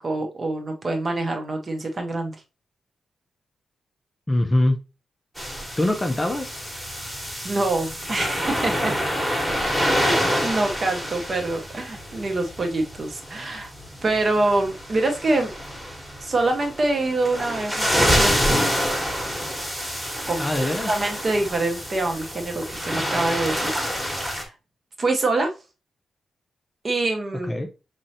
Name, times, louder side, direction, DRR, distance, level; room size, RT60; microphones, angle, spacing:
voice 1, 0.0-2.4 7.4-8.9 9.3-9.4 9.9-13.7 14.0-15.5 16.2-18.6 20.3-23.7 24.2-24.5 25.0-25.5 26.8-27.5, right 2 dB, 35° right, 0.8 m, -25 dB
voice 2, 4.3-4.8 5.8-6.6 20.4-20.9 27.4-27.7, left 1 dB, 15° left, 0.5 m, -23 dB
sound 1, 5.4-24.4, equal, 5° right, 1.2 m, -27 dB
5.2 x 3.2 x 2.7 m
wide cardioid pair, 155°, 0 cm